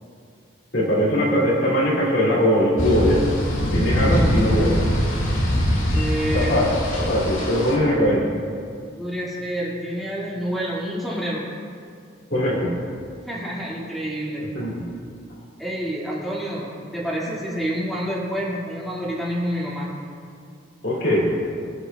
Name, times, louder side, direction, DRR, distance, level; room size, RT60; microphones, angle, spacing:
voice 1, 0.7-3.2 3.7-4.8 6.3-8.4 12.3-12.8 14.5-14.9 20.8-21.4, equal, 60° left, -4 dB, 2.4 m, -21 dB
sound 1, 2.8-7.8, equal, 85° left, 2.1 m, -22 dB
voice 2, 5.9-6.6 9.0-11.4 13.3-14.5 15.6-19.9, equal, ahead, -7 dB, 1.9 m, -28 dB
21.5 x 8.1 x 2.3 m, 2.3 s
head